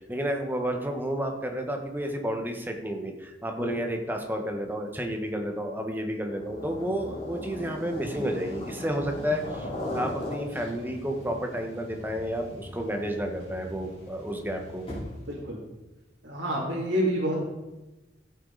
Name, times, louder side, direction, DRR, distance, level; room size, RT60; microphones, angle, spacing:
voice 1, 0.0-14.9, equal, 10° right, 3 dB, 1.2 m, -31 dB
sound 1, 6.2-15.4, left 1 dB, 30° left, 3.7 m, -39 dB
voice 2, 15.3-15.6 16.2-17.4, equal, 65° right, -7 dB, 2.7 m, -28 dB
14.5 x 8.3 x 4.0 m, 1.1 s
head